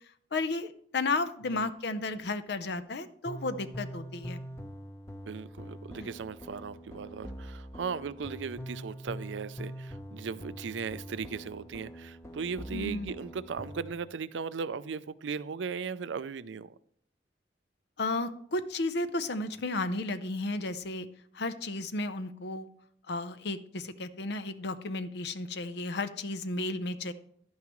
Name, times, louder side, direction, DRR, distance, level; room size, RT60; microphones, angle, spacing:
voice 1, 0.3-4.4 6.0-6.1 12.7-13.2 18.0-21.1 21.3-22.7 23.1-27.1, left 2 dB, 65° left, 12 dB, 0.7 m, -33 dB
sound 1, 3.2-13.9, equal, 15° left, 0.8 m, -43 dB
voice 2, 5.3-16.7, right 5 dB, 85° right, 16 dB, 0.4 m, -37 dB
11.5 x 9.4 x 3.1 m, 0.65 s
head